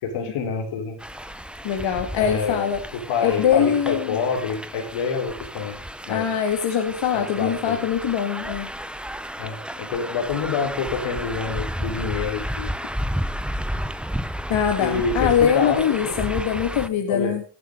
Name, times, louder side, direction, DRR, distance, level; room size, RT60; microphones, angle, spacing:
voice 1, 0.0-1.0 2.2-5.7 6.0-6.3 7.1-7.8 9.4-12.7 14.8-16.2 17.1-17.3, left 5 dB, 85° left, 3 dB, 4.5 m, -27 dB
sound 1, 1.0-16.9, equal, ahead, 1.0 m, -32 dB
voice 2, 1.6-2.8 3.2-4.2 6.1-8.7 14.5-17.4, left 8 dB, 65° left, 4 dB, 2.1 m, -22 dB
17.0 x 11.0 x 3.9 m, 0.35 s
cardioid pair, 85°, 49 cm